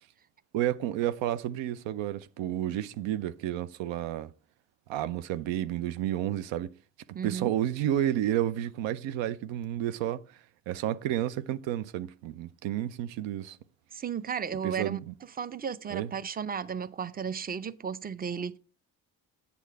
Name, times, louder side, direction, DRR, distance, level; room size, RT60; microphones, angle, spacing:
voice 1, 0.5-4.3 4.9-6.8 7.2-10.4 10.7-13.6 14.6-15.1 15.9-16.1, right 12 dB, 70° right, 0.6 m, -31 dB
voice 2, 7.1-7.5 13.9-15.0 15.4-18.6, right 7 dB, 20° right, 0.6 m, -34 dB
8.2 x 6.9 x 4.6 m
hypercardioid pair, 50°, 47 cm